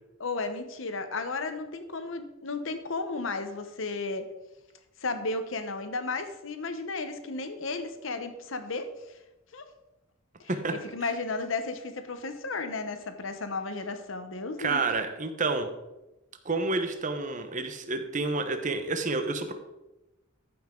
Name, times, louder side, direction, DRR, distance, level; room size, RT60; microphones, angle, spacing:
voice 1, 0.2-4.3 5.0-8.9 9.5-9.6 10.4-14.8, left 3 dB, 70° left, 9 dB, 1.0 m, -34 dB
voice 2, 14.6-15.7 16.4-19.5, right 3 dB, 40° right, 7 dB, 0.9 m, -29 dB
13.5 x 5.9 x 3.8 m, 0.99 s
head